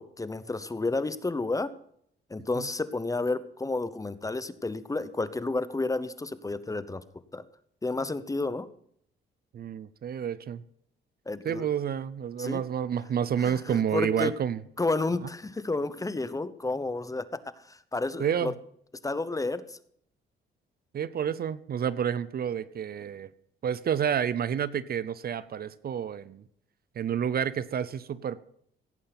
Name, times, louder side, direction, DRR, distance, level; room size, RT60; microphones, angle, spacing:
voice 1, 0.0-1.7 2.3-7.0 7.3-7.4 7.8-8.7 11.3-11.7 12.4-12.6 13.4-14.3 14.8-17.2 17.6-18.5 19.0-19.8, left 3 dB, 15° left, 15 dB, 0.9 m, -31 dB
voice 2, 9.5-10.6 11.4-14.6 18.2-18.5 20.9-23.3 23.6-26.4 27.0-28.4, right 8 dB, 50° right, 18 dB, 0.7 m, -29 dB
17.0 x 8.5 x 5.9 m, 0.68 s
cardioid pair, 90°, 20 cm